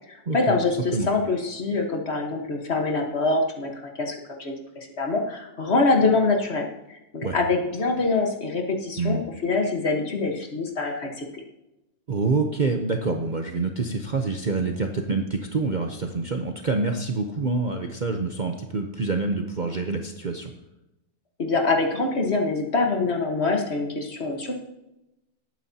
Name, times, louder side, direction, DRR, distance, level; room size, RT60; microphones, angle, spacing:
voice 1, 0.1-4.5 5.0-6.7 7.1-11.3 21.4-24.5, left 3 dB, 45° left, 2 dB, 1.6 m, -24 dB
voice 2, 9.0-9.3 12.1-20.5, right 3 dB, 40° right, 3 dB, 0.7 m, -26 dB
18.5 x 9.1 x 2.8 m, 0.93 s
omnidirectional pair, 1.6 m